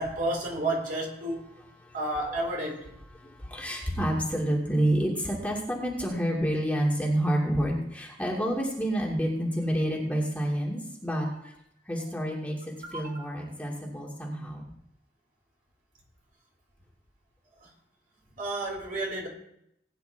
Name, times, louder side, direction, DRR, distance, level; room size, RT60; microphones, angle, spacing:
voice 1, 0.0-1.4 1.9-2.8 12.9-13.2 18.4-19.3, right 1 dB, 50° right, -2 dB, 4.7 m, -31 dB
voice 2, 1.6-2.0 3.1-11.3 11.9-14.6, equal, 10° left, -3 dB, 2.3 m, -29 dB
20.0 x 10.0 x 3.4 m, 0.75 s
head